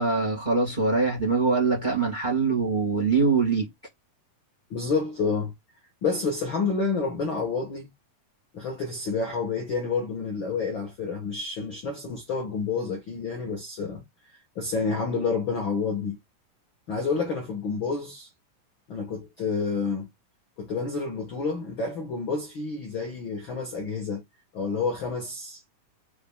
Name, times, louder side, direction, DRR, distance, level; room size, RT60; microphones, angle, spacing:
voice 1, 0.0-3.7, right 4 dB, 20° right, 1.6 m, -23 dB
voice 2, 4.7-5.5 6.0-7.9 8.5-14.0 14.5-16.2 16.9-18.3 18.9-20.1 20.6-24.2 24.5-25.6, left 4 dB, 60° left, 1.3 m, -29 dB
5.8 x 3.5 x 2.2 m
omnidirectional pair, 3.9 m